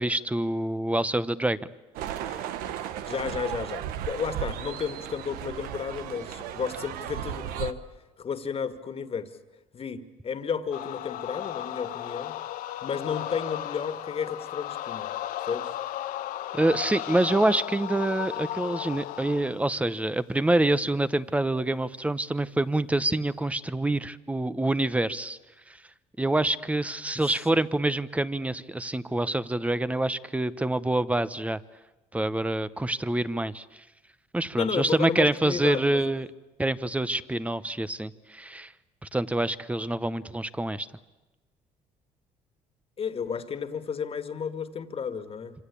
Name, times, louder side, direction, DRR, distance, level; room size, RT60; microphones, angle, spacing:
voice 1, 0.0-1.6 16.5-25.4 26.2-31.6 32.1-33.6 34.3-36.3 36.6-38.7 39.1-40.9, right 1 dB, 10° right, 15 dB, 1.1 m, -26 dB
sound 1, 2.0-7.7, right 10 dB, 90° right, 1.3 m, -35 dB
voice 2, 3.1-7.8 8.2-9.3 9.7-12.3 12.8-15.1 15.5-15.7 27.2-27.3 34.6-36.0 43.0-45.5, left 6 dB, 40° left, 10 dB, 2.1 m, -32 dB
sound 2, 10.7-19.6, left 13 dB, 80° left, 1.2 m, -35 dB
26.5 x 26.0 x 8.6 m, 1.1 s
cardioid pair, 100°, 15 cm